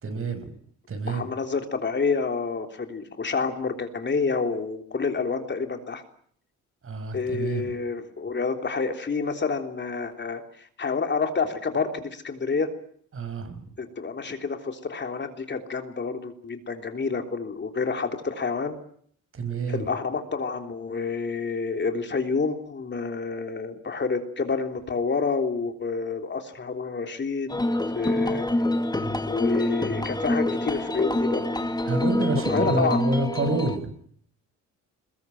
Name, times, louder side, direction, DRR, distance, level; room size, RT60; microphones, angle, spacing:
voice 1, 0.0-0.5 0.9-1.3 6.8-7.7 13.1-13.6 19.3-19.8 31.8-33.9, right 3 dB, 45° right, 10 dB, 6.3 m, -28 dB
voice 2, 1.0-6.0 7.1-12.7 13.8-18.7 19.7-27.5 28.0-28.5 29.3-31.5 32.5-33.2, left 4 dB, 35° left, 6 dB, 3.5 m, -28 dB
sound 1, 27.5-33.8, left 1 dB, 15° left, 2.4 m, -26 dB
22.0 x 21.5 x 9.2 m, 0.62 s
cardioid pair, 90°, 30 cm